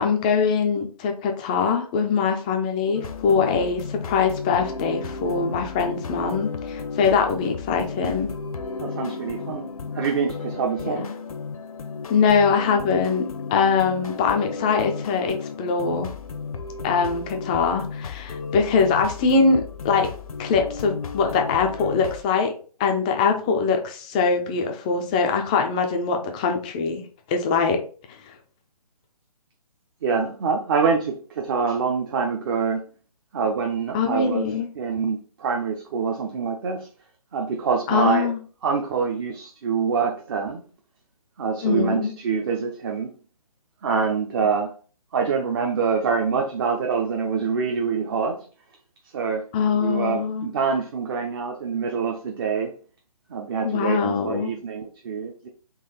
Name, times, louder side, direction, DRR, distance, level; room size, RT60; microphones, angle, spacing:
voice 1, 0.0-8.3 10.9-11.1 12.1-16.1 16.8-20.1 20.4-22.5 22.8-27.0 27.3-27.8 33.9-34.7 37.9-38.4 41.6-42.1 49.5-50.5 53.6-54.5, left 5 dB, 10° left, 0.4 m, -22 dB
sound 1, 2.9-22.2, left 5 dB, 65° left, 0.7 m, -34 dB
voice 2, 8.8-9.7 9.9-11.1 23.5-23.6 30.0-32.8 33.3-34.5 34.8-36.9 37.3-38.3 38.6-40.6 41.4-43.1 43.8-44.7 45.1-48.4 49.1-49.5 49.7-52.8 53.3-55.5, right 5 dB, 35° right, 0.6 m, -25 dB
3.9 x 2.8 x 4.1 m
figure-of-eight pair, 145°, 20 cm